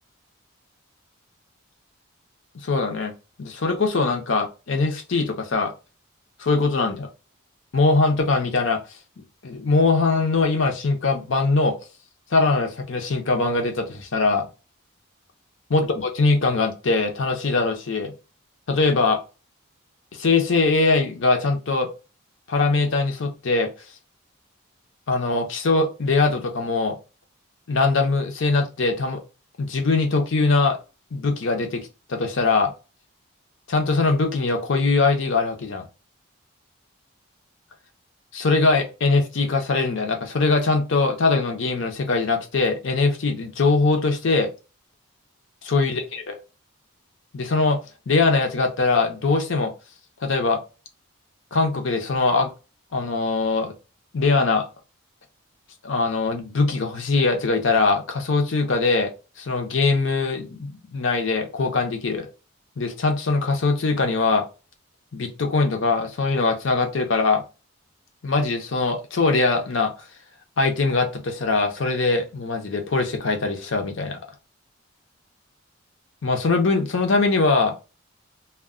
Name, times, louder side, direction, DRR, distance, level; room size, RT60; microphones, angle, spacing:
voice 1, 2.5-3.1 3.4-5.7 6.4-7.1 7.7-8.8 9.4-11.8 12.3-14.5 15.7-18.1 18.7-19.2 20.1-21.9 22.5-23.7 25.1-27.0 27.7-29.2 29.6-30.8 31.1-32.7 33.7-35.9 38.3-44.5 45.6-46.3 47.3-47.8 48.1-49.7 50.2-50.6 51.5-52.5 52.9-53.7 54.1-54.7 55.8-59.1 59.4-62.3 62.8-64.4 65.1-67.4 68.2-69.9 70.6-74.2 76.2-77.7, left 3 dB, 65° left, 5 dB, 0.6 m, -22 dB
2.1 x 2.1 x 3.5 m, 0.31 s
head